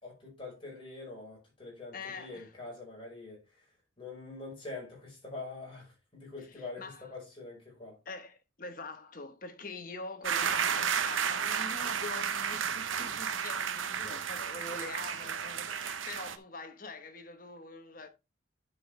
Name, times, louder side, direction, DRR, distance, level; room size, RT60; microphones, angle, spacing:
voice 1, 0.0-3.7 4.0-8.0 14.0-14.8 15.2-15.8, left 3 dB, 25° left, 5.1 m, -45 dB
voice 2, 1.9-2.5 6.8-7.1 8.1-18.1, left 3 dB, 45° left, 1.1 m, -44 dB
sound 1, 10.2-16.4, right 7 dB, 85° right, 0.8 m, -32 dB
10.5 x 5.8 x 3.3 m
head